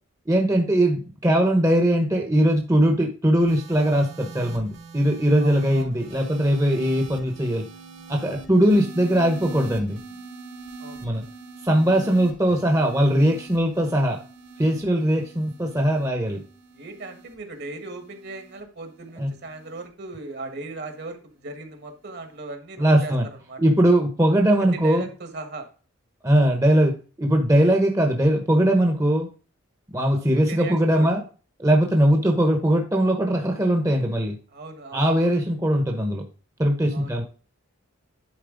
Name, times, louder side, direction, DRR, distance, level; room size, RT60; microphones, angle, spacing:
voice 1, 0.3-7.6 8.1-10.0 11.0-11.2 11.6-14.2 14.6-16.4 19.2-19.3 22.8-23.2 23.6-25.0 26.2-29.3 29.9-31.2 31.6-34.4 34.9-36.2 36.6-37.2, right 1 dB, 15° right, 2 dB, 0.9 m, -20 dB
sound 1, 3.4-19.9 20.8-21.1, right 4 dB, 70° right, 3.2 m, -43 dB
voice 2, 5.4-6.4 10.8-11.3 16.7-23.6 24.6-25.7 29.9-31.1 34.5-35.3 36.9-37.2, right 3 dB, 50° right, 6 dB, 1.5 m, -38 dB
10.5 x 4.3 x 3.8 m, 0.36 s
head